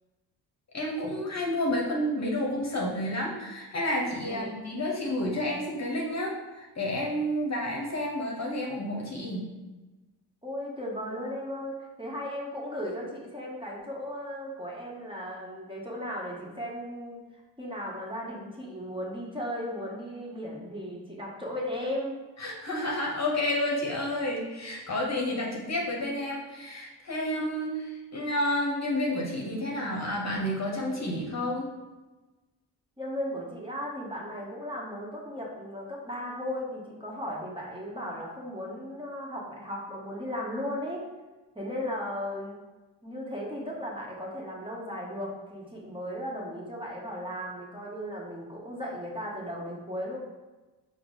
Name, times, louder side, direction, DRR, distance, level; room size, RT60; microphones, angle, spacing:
voice 1, 0.7-9.5 22.4-31.7, left 1 dB, 40° left, -2 dB, 1.0 m, -30 dB
voice 2, 10.4-22.1 33.0-41.0 41.5-42.6 43.0-50.2, equal, 10° right, -4 dB, 1.1 m, -36 dB
4.5 x 2.1 x 3.8 m, 1.2 s
supercardioid pair, 50°, 43 cm